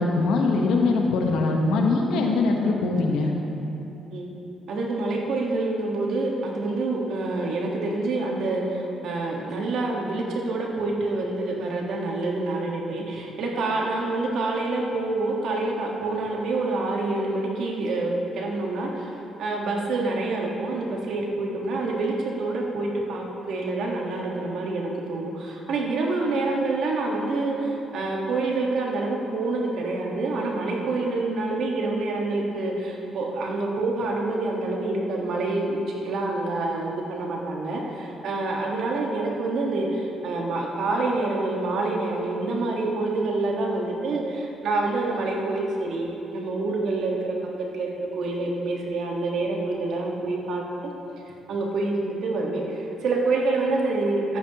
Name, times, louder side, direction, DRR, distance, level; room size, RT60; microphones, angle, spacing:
voice 1, 0.0-3.3, left 3 dB, 85° left, 1 dB, 1.1 m, -22 dB
voice 2, 4.7-19.1 19.4-47.3 47.7-50.6 51.5-54.4, right 2 dB, 75° right, -1 dB, 1.5 m, -27 dB
14.0 x 8.4 x 3.0 m, 3.0 s
cardioid pair, 90°, 0 cm